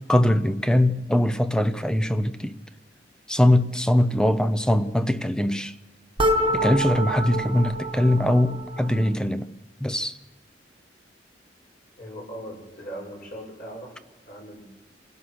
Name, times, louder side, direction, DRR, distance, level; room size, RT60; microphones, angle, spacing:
voice 1, 0.1-2.5 3.3-5.7 6.5-9.5 9.8-10.2, left 1 dB, 5° left, 0.8 m, -22 dB
sound 1, 6.2-9.1, right 1 dB, 30° right, 1.4 m, -26 dB
voice 2, 12.0-13.9 14.3-14.6, right 1 dB, 50° left, 6.6 m, -39 dB
27.0 x 16.5 x 6.2 m
head